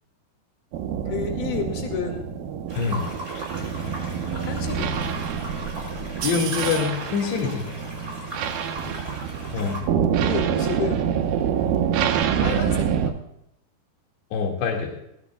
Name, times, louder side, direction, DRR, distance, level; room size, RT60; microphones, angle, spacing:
sound 1, 0.7-13.1, right 8 dB, 70° right, 2.3 m, -26 dB
voice 1, 1.1-2.3 4.4-5.0 8.7-9.2 10.2-11.1 12.4-13.1, left 6 dB, 65° left, 3 dB, 3.8 m, -31 dB
sound 2, 2.7-9.8, right 1 dB, 15° right, 4.7 m, -38 dB
voice 2, 2.8-3.1 6.2-7.6 9.5-9.8 14.3-14.9, left 6 dB, 90° left, 0 dB, 4.4 m, -25 dB
sound 3, 3.8-6.6, right 3 dB, 55° right, 6.1 m, -40 dB
19.0 x 16.5 x 2.3 m, 0.79 s
omnidirectional pair, 4.9 m